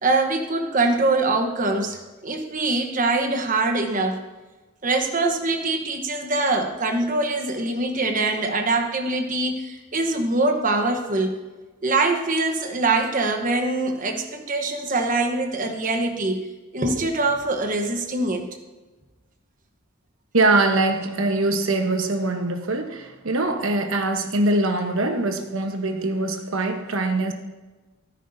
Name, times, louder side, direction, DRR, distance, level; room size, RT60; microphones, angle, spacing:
voice 1, 0.0-4.2 4.8-11.4 11.8-16.5 16.7-18.5, right 2 dB, 35° right, 4 dB, 1.1 m, -23 dB
voice 2, 20.3-27.3, right 2 dB, 70° right, 6 dB, 1.1 m, -23 dB
13.5 x 11.0 x 2.7 m, 1.2 s
head